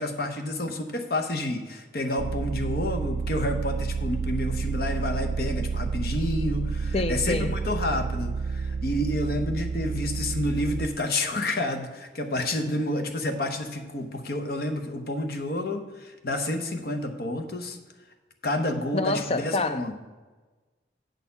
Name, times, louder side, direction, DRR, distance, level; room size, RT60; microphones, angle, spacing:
voice 1, 0.0-17.8 18.4-19.9, left 1 dB, 55° left, 0.8 m, -29 dB
sound 1, 2.2-10.9, right 5 dB, 60° right, 0.3 m, -30 dB
voice 2, 6.9-7.5 12.7-12.9 18.9-19.9, left 2 dB, 30° left, 0.4 m, -27 dB
7.9 x 4.4 x 6.8 m
head